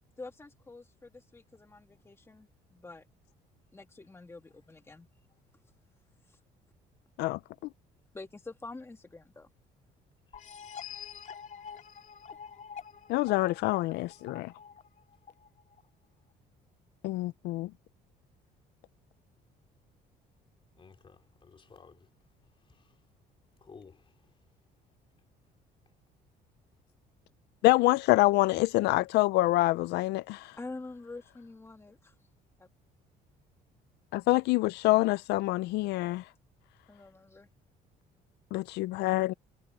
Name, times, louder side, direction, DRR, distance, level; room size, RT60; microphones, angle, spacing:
voice 1, 0.2-3.1 3.7-5.1 6.3-6.4 8.1-9.5 30.6-32.1 32.6-32.7 36.9-37.5, left 3 dB, 15° left, 1.6 m, -46 dB
sound 1, 10.3-15.8, left 7 dB, 45° left, 2.8 m, -46 dB
voice 2, 13.1-14.5 17.0-17.7 27.6-30.6 34.1-36.2 38.5-39.3, left 19 dB, 85° left, 0.5 m, -26 dB
voice 3, 20.7-22.1 22.6-23.0 23.6-24.3, left 5 dB, 30° left, 3.5 m, -55 dB
cardioid pair, 110°, 17 cm